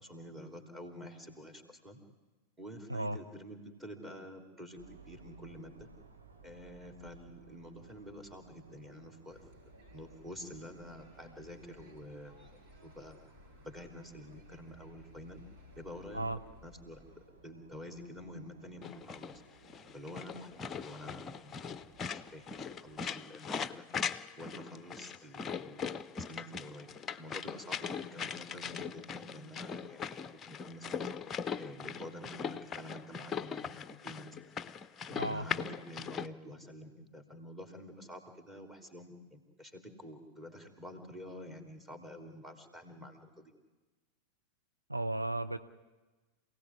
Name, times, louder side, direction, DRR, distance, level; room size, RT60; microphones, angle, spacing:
voice 1, 0.0-2.0 2.6-5.9 6.4-9.4 9.9-13.2 13.6-15.4 15.8-17.0 17.4-19.4 19.9-21.5 22.1-23.9 24.4-26.9 27.2-31.1 31.6-34.6 35.1-43.5, equal, 15° right, 5 dB, 3.5 m, -48 dB
sound 1, 4.8-23.0, right 3 dB, 70° right, 2.6 m, -60 dB
sound 2, 9.3-17.3, left 1 dB, 45° right, 5.3 m, -59 dB
sound 3, 18.8-36.3, left 7 dB, 20° left, 0.7 m, -40 dB
voice 2, 44.9-45.6, right 2 dB, 85° right, 9 dB, 0.7 m, -34 dB
27.0 x 17.5 x 9.7 m, 1.2 s
figure-of-eight pair, 90°, 0 cm